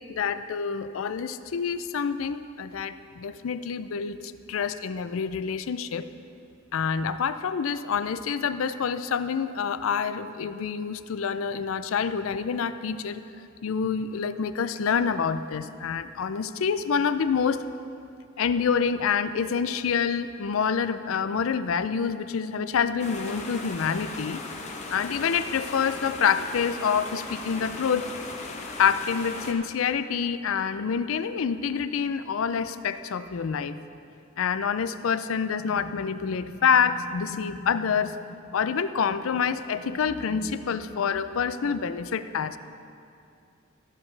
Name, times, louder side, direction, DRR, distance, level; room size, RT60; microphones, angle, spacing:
voice 1, 0.1-4.2 4.5-6.1 6.7-13.2 13.6-17.6 18.4-24.4 24.9-28.1 28.8-33.8 34.4-38.1 38.5-42.6, left 6 dB, 75° left, 12 dB, 0.4 m, -27 dB
sound 1, 23.0-29.5, left 3 dB, 35° left, 1.0 m, -38 dB
14.0 x 11.5 x 3.3 m, 2.5 s
head